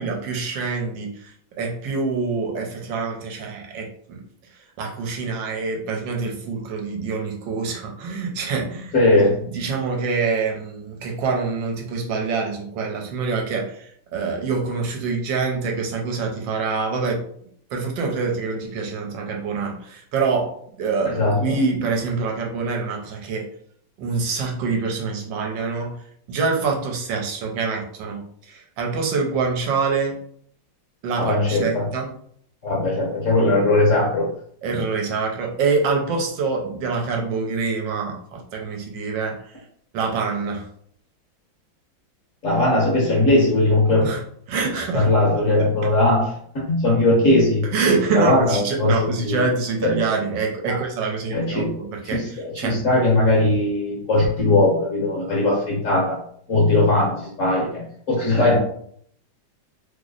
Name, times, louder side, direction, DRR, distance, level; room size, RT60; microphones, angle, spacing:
voice 1, 0.0-1.3 1.6-4.2 4.8-9.2 9.5-17.2 17.7-20.5 20.8-23.5 24.0-25.9 26.3-30.2 31.0-32.1 34.6-39.4 39.9-40.7 44.0-44.2 44.5-45.1 47.7-52.2 52.5-52.8, right 4 dB, 75° right, 1 dB, 1.3 m, -25 dB
voice 2, 8.9-9.3 21.0-21.4 31.2-31.9 32.6-34.3 42.4-44.1 44.9-47.7 48.1-49.4 49.8-50.2 50.6-50.8 51.3-51.7 52.1-56.2 56.5-57.8 58.1-58.6, left 2 dB, 50° left, -3 dB, 1.1 m, -19 dB
3.1 x 2.0 x 3.7 m, 0.64 s
omnidirectional pair, 2.0 m